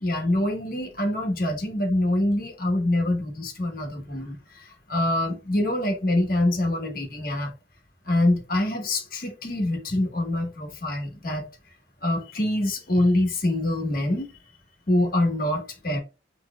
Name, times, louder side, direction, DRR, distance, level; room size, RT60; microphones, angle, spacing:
voice 1, 0.0-4.6 4.9-7.5 8.1-11.5 12.0-14.3 14.9-16.0, left 1 dB, 50° left, 1.5 m, -25 dB
6.3 x 3.3 x 2.3 m
head